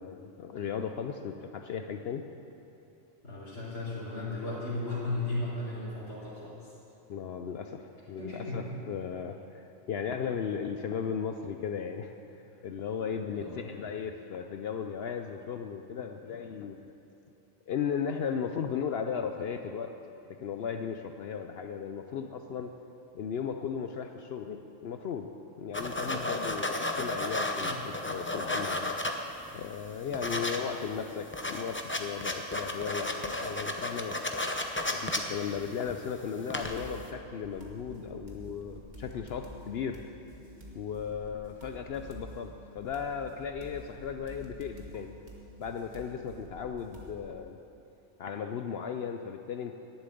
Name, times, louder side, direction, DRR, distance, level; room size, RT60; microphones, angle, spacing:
voice 1, 0.0-2.2 7.1-12.1 12.6-16.9 17.7-19.9 20.3-22.7 23.1-25.3 25.6-29.0 29.5-34.2 34.9-40.0 40.7-45.1 45.6-47.6 48.2-49.8, left 7 dB, 65° left, 6 dB, 0.7 m, -36 dB
voice 2, 3.2-6.7 8.2-8.7 13.3-13.7 26.0-26.1 27.6-27.8 30.2-30.3, left 2 dB, 90° left, -11 dB, 3.1 m, -36 dB
sound 1, 25.7-29.5 29.8-30.6 30.9-31.0 31.2-36.1 36.4-36.9, left 1 dB, 15° left, 0.5 m, -33 dB
sound 2, 36.6-47.3, equal, 40° right, 1.5 m, -49 dB
11.5 x 7.1 x 9.1 m, 3.0 s
omnidirectional pair, 1.3 m